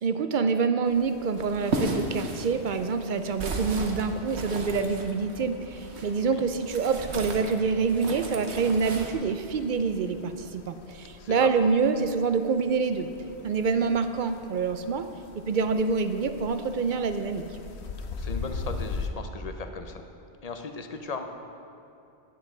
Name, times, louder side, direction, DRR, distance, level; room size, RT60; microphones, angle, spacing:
voice 1, 0.0-13.1 13.4-15.1 15.4-17.5, right 5 dB, 55° right, 9 dB, 0.6 m, -26 dB
sound 1, 0.8-19.1, left 4 dB, 80° left, 1.0 m, -43 dB
sound 2, 1.4-6.1 6.6-9.1, right 2 dB, 90° right, 1.2 m, -34 dB
voice 2, 11.2-11.7 18.1-20.0 20.4-21.2, left 4 dB, 40° left, 6 dB, 0.7 m, -37 dB
12.0 x 9.4 x 3.9 m, 2.7 s
omnidirectional pair, 1.1 m